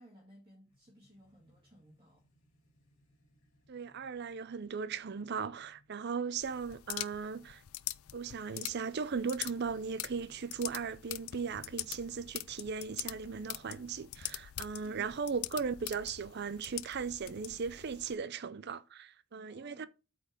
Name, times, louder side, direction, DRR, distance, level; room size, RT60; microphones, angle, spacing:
voice 1, 0.0-2.2 19.4-19.9, right 1 dB, 25° right, 1.9 m, -58 dB
sound 1, 0.7-14.9, equal, 55° left, 3.2 m, -68 dB
voice 2, 3.7-7.6 8.1-19.9, right 5 dB, 50° right, 0.5 m, -37 dB
sound 2, 6.4-18.1, left 16 dB, 75° left, 0.4 m, -44 dB
8.4 x 4.3 x 5.1 m
head